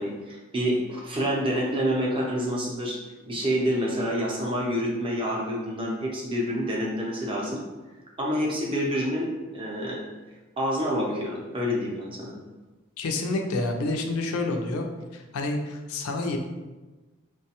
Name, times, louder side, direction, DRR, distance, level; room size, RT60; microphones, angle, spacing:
voice 1, 0.0-7.6 8.2-10.0 10.6-12.4, equal, 25° right, -2 dB, 0.5 m, -28 dB
voice 2, 13.0-14.9 15.1-16.4, left 2 dB, 85° left, 3 dB, 0.4 m, -28 dB
3.2 x 2.2 x 2.8 m, 1.2 s
head